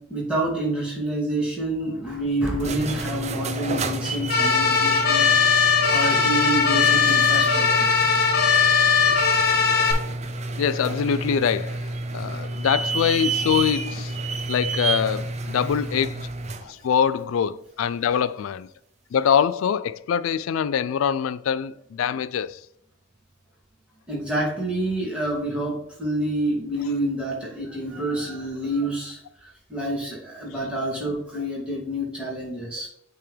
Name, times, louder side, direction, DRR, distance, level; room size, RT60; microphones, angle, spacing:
voice 1, 0.0-5.3 5.9-7.9 24.1-32.9, right 1 dB, 5° right, 2.5 m, -28 dB
sound 1, 2.5-16.7, right 3 dB, 35° right, 0.5 m, -30 dB
sound 2, 4.3-9.9, left 5 dB, 50° left, 1.0 m, -19 dB
voice 2, 10.6-11.8 12.1-14.2 14.5-16.3 16.6-18.7 19.1-22.6, left 8 dB, 85° left, 0.3 m, -24 dB
8.4 x 3.7 x 3.4 m
head